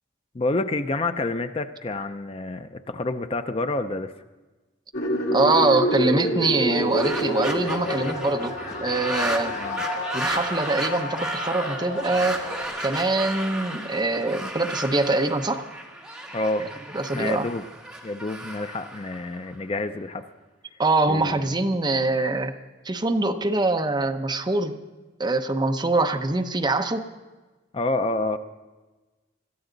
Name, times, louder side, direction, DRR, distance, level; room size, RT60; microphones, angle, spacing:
voice 1, 0.3-4.1 9.6-9.8 16.3-16.7 17.1-17.6 18.0-20.2 21.1-21.6 27.7-28.4, left 2 dB, 30° left, 9 dB, 0.5 m, -28 dB
sound 1, 4.9-12.6, equal, 60° left, 2.6 m, -28 dB
voice 2, 5.3-8.5 8.8-9.6 10.1-12.4 12.8-15.6 16.6-16.7 16.9-17.5 20.8-22.5 22.8-24.8 25.2-27.1, right 2 dB, 25° right, 5 dB, 0.9 m, -24 dB
sound 2, 6.6-19.8, right 1 dB, 5° right, 1.6 m, -34 dB
21.5 x 14.0 x 4.0 m, 1.2 s
head